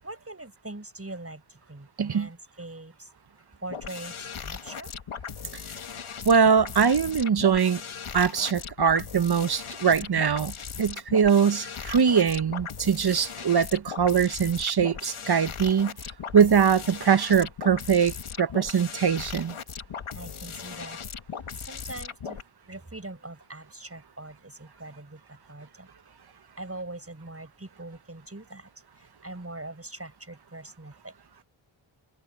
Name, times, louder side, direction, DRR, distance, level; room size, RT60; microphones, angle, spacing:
voice 1, 0.0-3.1 3.6-4.9 20.1-21.0 21.7-22.4 22.7-25.9 26.6-31.1, right 2 dB, 30° right, 7.4 m, -42 dB
voice 2, 2.0-2.3 6.2-7.8 8.1-10.5 10.8-15.9 16.3-19.5, right 7 dB, 50° right, 0.9 m, -22 dB
sound 1, 3.7-22.4, left 6 dB, 90° left, 1.6 m, -38 dB
cardioid pair, 45°, 48 cm